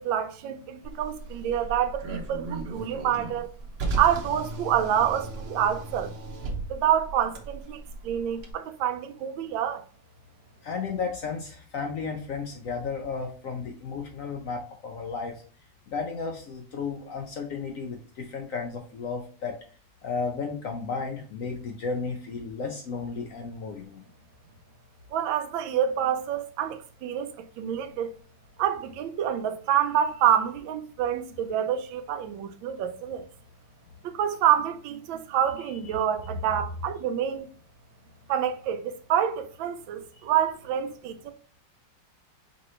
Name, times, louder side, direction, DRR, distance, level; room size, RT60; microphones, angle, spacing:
voice 1, 0.0-3.5 4.0-6.1 6.7-9.8 25.1-28.1 28.6-33.2 34.0-37.5 38.3-41.3, right 10 dB, 85° right, 1.3 m, -27 dB
Car, 0.8-8.5, right 3 dB, 55° right, 0.7 m, -36 dB
voice 2, 10.6-15.4 15.9-19.6 20.0-24.0 40.2-40.3, left 5 dB, 75° left, 0.7 m, -33 dB
4.9 x 3.1 x 3.0 m
omnidirectional pair, 2.1 m